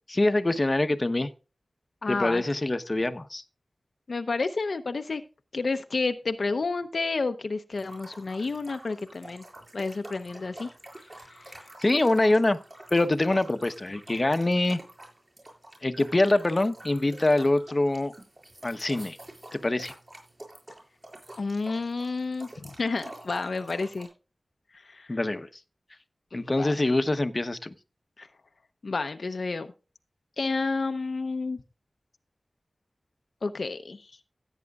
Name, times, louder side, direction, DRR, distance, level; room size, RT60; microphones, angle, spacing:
voice 1, 0.1-1.3 2.1-3.4 11.8-12.6 12.9-14.8 15.8-18.1 18.6-19.2 19.5-19.9 25.1-25.5 26.3-27.7, left 2 dB, 35° left, 9 dB, 0.9 m, -24 dB
voice 2, 2.0-2.4 4.1-5.2 5.5-9.4 9.7-10.7 11.2-11.7 21.4-24.1 24.7-25.2 26.3-26.7 28.2-28.3 28.8-29.7 30.4-31.6 33.4-34.1, left 3 dB, 70° left, 8 dB, 0.7 m, -30 dB
sound 1, 7.7-24.1, right 1 dB, 35° right, 6.8 m, -47 dB
16.5 x 9.1 x 2.4 m, 0.33 s
wide cardioid pair, 60°, 0 cm